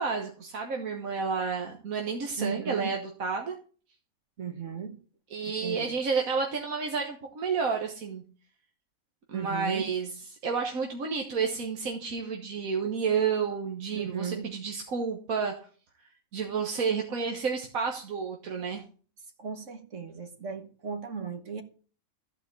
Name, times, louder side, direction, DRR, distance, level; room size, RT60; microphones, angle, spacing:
voice 1, 0.0-3.6 5.3-8.2 9.3-10.1 10.4-15.5 16.3-18.8, right 5 dB, 80° right, 1.7 m, -30 dB
voice 2, 2.4-3.0 4.4-5.0 5.6-5.9 9.3-9.9 13.9-14.5 19.4-21.6, right 6 dB, 65° right, 1.6 m, -36 dB
14.0 x 5.0 x 8.4 m
omnidirectional pair, 1.4 m